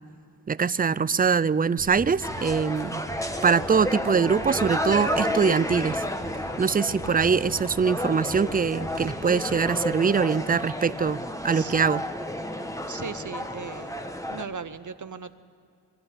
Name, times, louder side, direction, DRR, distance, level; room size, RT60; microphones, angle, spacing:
voice 1, 0.5-3.0 3.4-6.0 6.6-12.0, right 6 dB, 25° right, 19 dB, 0.4 m, -23 dB
sound 1, 1.8-9.7, equal, 75° left, 4.0 m, -42 dB
sound 2, 2.2-14.4, left 1 dB, 10° left, 1.3 m, -31 dB
voice 2, 12.9-13.9 14.3-15.3, right 6 dB, 50° right, 12 dB, 0.8 m, -37 dB
24.0 x 13.5 x 8.5 m, 2.4 s
wide cardioid pair, 75°, 38 cm